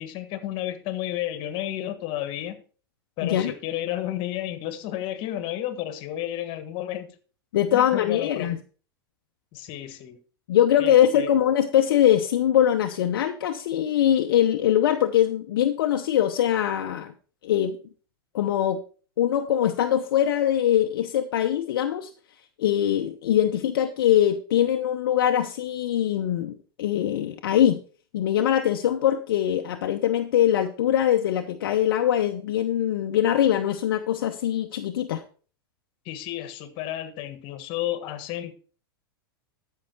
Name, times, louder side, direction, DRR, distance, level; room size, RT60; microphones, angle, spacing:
voice 1, 0.0-2.6 3.2-7.1 7.7-8.6 9.5-10.2 10.8-11.3 36.0-38.5, left 12 dB, 45° left, 1.5 m, -32 dB
voice 2, 3.2-3.5 7.5-8.6 10.5-17.1 17.4-17.8 18.3-18.8 19.2-22.1 22.6-27.8 28.1-35.2, left 11 dB, 65° left, 0.8 m, -22 dB
13.5 x 5.7 x 4.5 m
hypercardioid pair, 100°, 12 cm